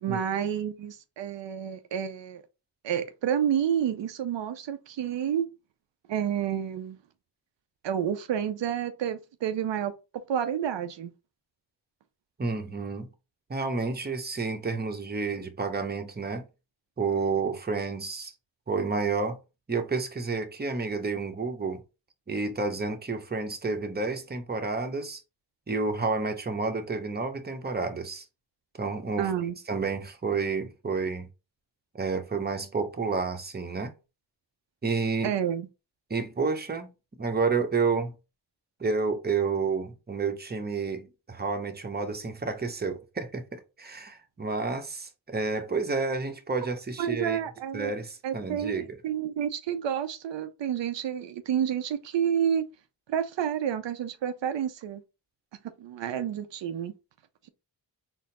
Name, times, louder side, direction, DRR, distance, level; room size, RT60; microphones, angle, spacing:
voice 1, 0.0-2.4 2.8-5.5 6.1-7.0 7.8-9.9 10.3-11.1 29.2-29.6 35.2-35.7 47.0-47.9 48.2-52.7 53.1-55.0 55.8-56.9, right 9 dB, 85° right, 0.5 m, -29 dB
voice 2, 12.4-13.1 13.5-16.5 17.0-18.3 18.7-19.4 19.7-21.8 22.3-25.2 25.7-28.2 28.8-29.3 29.7-31.3 31.9-33.9 34.8-35.4 36.1-36.9 37.2-38.1 38.8-47.4 47.7-49.0, right 4 dB, 20° right, 0.8 m, -30 dB
4.2 x 2.0 x 4.0 m
cardioid pair, 60°, 43 cm